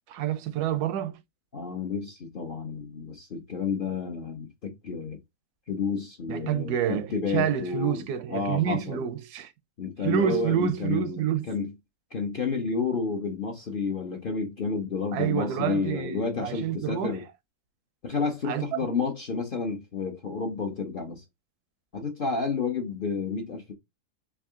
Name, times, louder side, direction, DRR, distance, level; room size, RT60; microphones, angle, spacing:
voice 1, 0.1-1.2 6.3-9.5 10.0-11.5 15.1-17.2 18.4-18.6, right 10 dB, 85° right, 1.1 m, -28 dB
voice 2, 1.5-5.2 5.7-8.0 8.3-9.1 9.8-11.7 12.1-17.2 18.0-21.2 21.9-23.7, left 5 dB, 50° left, 0.6 m, -30 dB
3.6 x 2.6 x 3.4 m
omnidirectional pair, 1.6 m